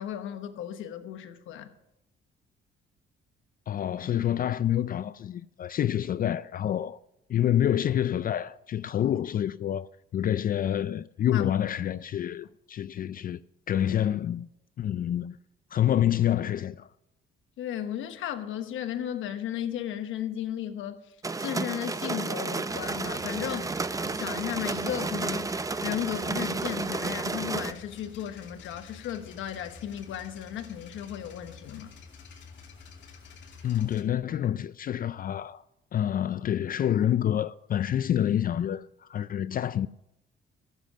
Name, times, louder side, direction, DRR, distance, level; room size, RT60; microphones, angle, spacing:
voice 1, 0.0-1.7 11.3-11.5 17.6-21.0 21.4-23.7 24.0-31.9, left 10 dB, 85° left, 1.2 m, -35 dB
voice 2, 3.7-7.0 7.3-13.4 13.7-14.5 14.8-15.4 15.7-16.9 33.6-35.6 35.9-39.9, left 10 dB, 45° left, 0.4 m, -27 dB
sound 1, 21.2-27.7, right 3 dB, 15° right, 0.5 m, -32 dB
sound 2, 22.7-34.0, left 5 dB, 65° left, 2.7 m, -49 dB
14.5 x 7.4 x 6.3 m
cardioid pair, 90°, 20 cm